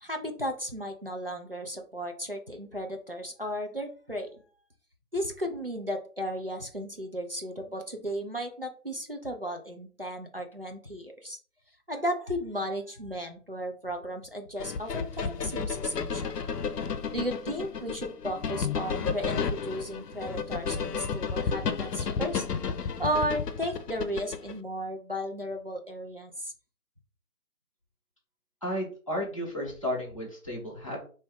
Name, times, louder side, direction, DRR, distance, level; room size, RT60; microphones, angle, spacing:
voice 1, 0.0-4.3 5.1-11.4 11.9-16.4 16.9-22.5 23.0-26.5, equal, 40° right, 3 dB, 0.5 m, -34 dB
sound 1, 14.6-24.6, left 6 dB, 90° left, 0.6 m, -32 dB
voice 2, 28.6-31.0, equal, 20° left, -4 dB, 0.8 m, -33 dB
3.5 x 2.7 x 3.4 m, 0.39 s
figure-of-eight pair, 170°, 47 cm